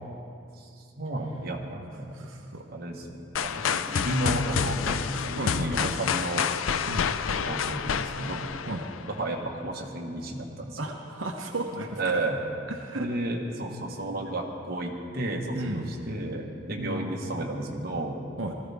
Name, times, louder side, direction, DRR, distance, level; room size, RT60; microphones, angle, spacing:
voice 1, 1.0-2.1 2.7-6.5 7.3-8.4 9.0-10.8 12.0-12.4 12.9-18.2, right 2 dB, 50° right, 0 dB, 1.5 m, -32 dB
voice 2, 2.1-2.6 5.3-5.9 6.9-7.1 8.7-8.9 10.8-12.0 12.7-13.1 15.5-15.9 16.8-17.1 18.4-18.5, right 2 dB, 85° right, 1 dB, 0.9 m, -34 dB
sound 1, 3.3-9.2, left 7 dB, 90° left, 0.4 m, -29 dB
19.5 x 14.0 x 3.6 m, 2.5 s
head